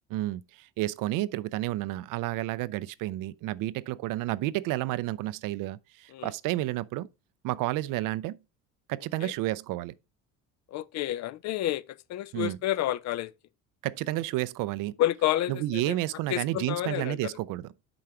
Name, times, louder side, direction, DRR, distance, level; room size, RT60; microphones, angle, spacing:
voice 1, 0.1-7.1 7.4-8.4 8.9-9.9 12.3-12.6 13.8-15.0 15.5-17.7, right 16 dB, 55° right, 0.5 m, -31 dB
voice 2, 10.7-13.3 15.0-16.0 16.3-17.2, left 13 dB, 45° left, 0.4 m, -29 dB
7.8 x 4.7 x 4.4 m
hypercardioid pair, 60°, 40 cm